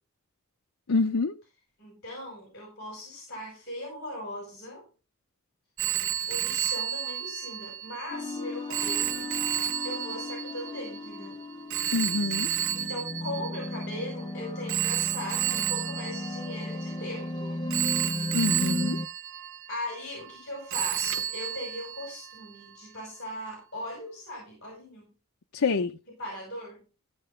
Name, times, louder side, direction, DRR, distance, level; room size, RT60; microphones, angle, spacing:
voice 1, 0.9-1.3 11.9-12.5 18.3-19.0 25.5-26.0, left 4 dB, 75° left, 0.6 m, -26 dB
voice 2, 1.8-4.8 6.3-9.3 9.8-11.4 12.7-17.6 19.7-25.1 26.2-26.8, left 1 dB, 50° left, 5.7 m, -39 dB
Telephone, 5.8-14.1 14.7-17.2 17.7-20.4 20.7-22.4, right 11 dB, 70° right, 0.6 m, -32 dB
sound 1, 8.1-19.1, left 1 dB, 20° left, 0.6 m, -35 dB
15.5 x 6.8 x 3.7 m
head